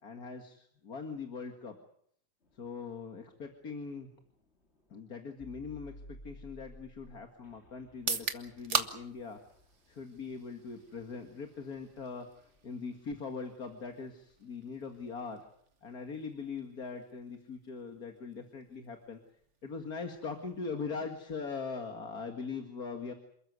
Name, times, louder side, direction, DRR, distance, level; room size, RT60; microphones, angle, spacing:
voice 1, 0.0-1.8 2.6-4.1 4.9-9.4 9.9-12.3 12.6-15.4 15.8-19.2 19.6-23.1, left 5 dB, 45° left, 5 dB, 2.4 m, -41 dB
sound 1, 2.4-15.1, left 1 dB, 30° left, 3.9 m, -58 dB
sound 2, 7.9-21.8, right 5 dB, 35° right, 1.7 m, -43 dB
28.0 x 14.0 x 9.6 m, 0.66 s
omnidirectional pair, 2.3 m